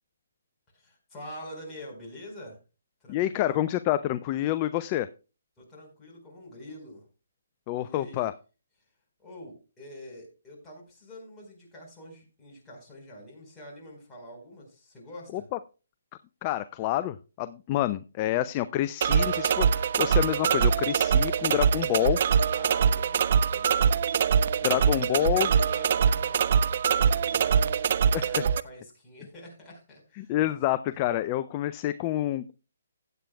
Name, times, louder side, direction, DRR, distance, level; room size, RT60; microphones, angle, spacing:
voice 1, 0.7-2.6 3.0-3.6 5.6-7.0 7.8-8.3 9.2-15.4 22.5-23.9 24.7-30.4, left 1 dB, 10° left, -3 dB, 4.4 m, -46 dB
voice 2, 3.1-5.1 7.7-8.3 15.3-15.4 16.4-22.2 24.6-25.5 28.1-28.3 30.2-32.5, left 14 dB, 30° left, 14 dB, 0.4 m, -28 dB
sound 1, 19.0-28.6, right 7 dB, 50° right, 0.4 m, -23 dB
16.0 x 9.0 x 2.3 m, 0.32 s
hypercardioid pair, 145°, 0 cm